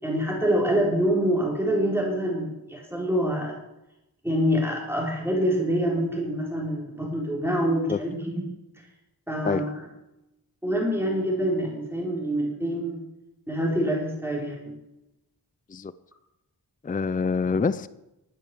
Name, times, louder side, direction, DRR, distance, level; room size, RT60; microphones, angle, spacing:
voice 1, 0.0-3.6 4.2-8.5 8.8-8.9 9.3-9.7 10.6-13.0 13.5-14.8, equal, 5° right, 4.2 m, -26 dB
voice 2, 16.8-17.9, left 4 dB, 20° left, 0.5 m, -25 dB
12.0 x 8.9 x 6.9 m
cardioid pair, 50°, 40 cm